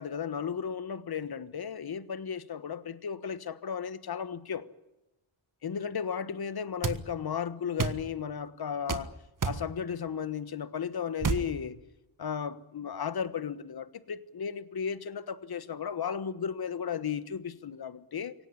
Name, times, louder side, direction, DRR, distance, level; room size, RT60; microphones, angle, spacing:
voice 1, 0.0-4.7 5.6-9.1 9.4-11.8 12.2-18.3, left 7 dB, 45° left, 1.3 m, -35 dB
sound 1, 6.8-7.0 7.8-8.0 8.9-9.1 9.4-9.6 11.2-11.5, right 5 dB, 40° right, 1.7 m, -29 dB
25.5 x 18.0 x 9.9 m
wide cardioid pair, 105°, 50 cm